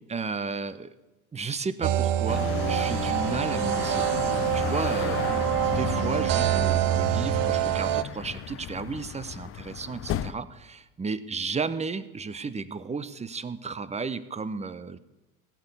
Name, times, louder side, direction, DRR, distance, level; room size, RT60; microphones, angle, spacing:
voice 1, 0.1-0.9 1.3-15.0, right 4 dB, 15° right, 15 dB, 0.8 m, -34 dB
sound 1, 1.8-8.0, right 12 dB, 50° right, 0.8 m, -26 dB
sound 2, 2.3-10.3, left 11 dB, 30° left, 0.6 m, -33 dB
16.5 x 7.0 x 8.4 m, 1.1 s
hypercardioid pair, 80°, 45 cm